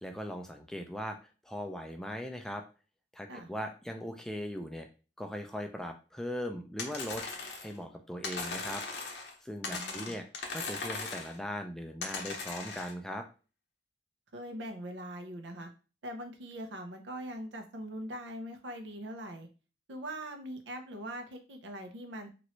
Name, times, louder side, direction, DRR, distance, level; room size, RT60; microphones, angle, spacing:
voice 1, 0.0-1.2 1.4-2.6 3.1-4.9 5.2-7.2 7.6-8.8 9.4-13.3, equal, 5° left, 4 dB, 0.3 m, -39 dB
sound 1, 6.8-7.8 8.2-9.3 9.6-11.4 12.0-12.9, left 4 dB, 65° left, 0.7 m, -39 dB
voice 2, 9.6-10.1 14.3-15.7 16.0-19.5 19.9-22.3, right 1 dB, 85° right, 5 dB, 0.7 m, -42 dB
3.1 x 2.6 x 3.0 m, 0.33 s
head